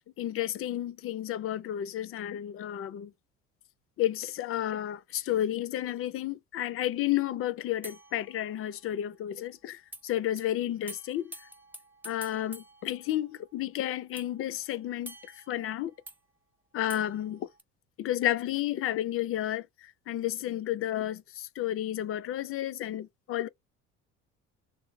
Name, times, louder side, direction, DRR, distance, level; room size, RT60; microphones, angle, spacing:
voice 1, 0.2-3.1 4.0-11.3 12.0-15.1 15.5-15.9 16.7-17.5 18.0-23.5, left 12 dB, 40° left, 0.5 m, -32 dB
sound 1, 7.8-9.0 9.9-10.0 10.4-10.5 10.9-13.6 14.2-16.2 16.9-17.6, right 1 dB, 5° right, 0.6 m, -49 dB
3.1 x 2.0 x 2.6 m
hypercardioid pair, 75°, 35 cm